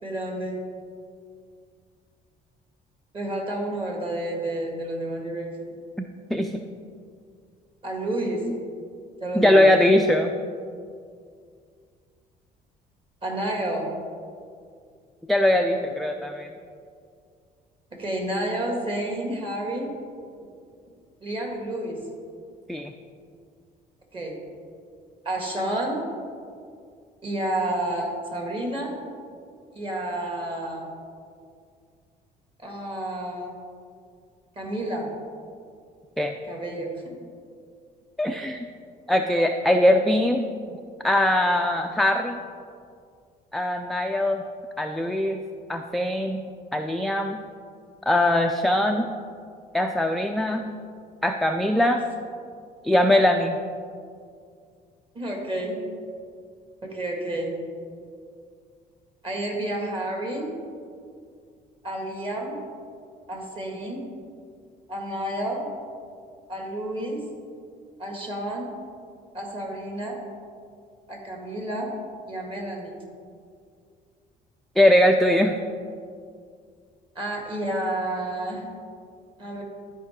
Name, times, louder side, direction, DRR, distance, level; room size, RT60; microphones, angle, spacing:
voice 1, 0.0-0.6 3.1-5.7 7.8-8.4 9.2-9.7 13.2-13.9 18.0-19.9 21.2-22.0 24.1-24.3 25.3-26.0 27.2-29.0 29.7-30.9 32.6-33.5 34.6-35.1 36.4-37.2 55.1-55.8 56.8-57.5 59.2-60.5 61.8-62.6 63.3-64.0 64.9-65.7 66.5-67.2 68.0-68.7 69.3-70.2 71.1-71.9 72.3-73.0 77.2-78.6 79.4-79.6, right 1 dB, 30° right, 0 dB, 2.0 m, -30 dB
voice 2, 6.3-6.6 8.4-8.6 9.3-10.3 15.3-16.5 22.7-22.9 36.2-36.3 38.2-38.7 39.1-40.5 41.0-42.4 43.5-44.4 44.8-45.4 45.7-46.4 46.7-47.4 48.1-49.1 49.7-50.8 51.2-52.1 52.8-53.6 74.8-75.6, left 1 dB, ahead, 3 dB, 0.3 m, -21 dB
12.5 x 4.8 x 3.6 m, 2.2 s
cardioid pair, 110°, 17 cm